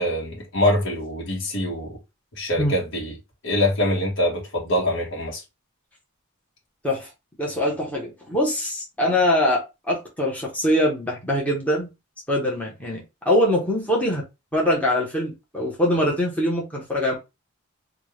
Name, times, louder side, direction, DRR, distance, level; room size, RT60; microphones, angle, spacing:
voice 1, 0.0-2.0 2.3-3.1 3.4-5.4, left 1 dB, 60° left, 1.2 m, -24 dB
voice 2, 7.4-11.9 12.3-14.2 14.5-17.1, left 1 dB, 5° left, 1.0 m, -23 dB
3.4 x 2.4 x 3.2 m
head